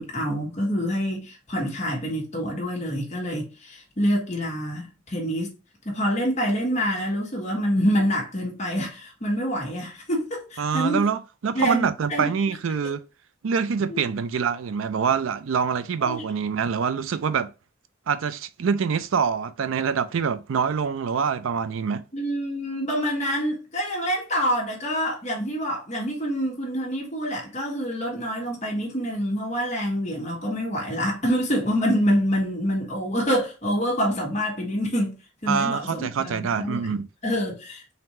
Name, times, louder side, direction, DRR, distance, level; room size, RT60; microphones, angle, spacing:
voice 1, 0.0-5.5 5.8-11.0 11.5-12.2 13.9-14.0 16.0-16.2 22.1-35.1 35.4-36.8 37.2-37.9, equal, 35° left, 1.4 m, -26 dB
voice 2, 10.6-13.0 13.4-17.5 18.1-22.0 35.5-37.1, right 6 dB, 85° right, 0.4 m, -25 dB
3.9 x 2.6 x 4.2 m
head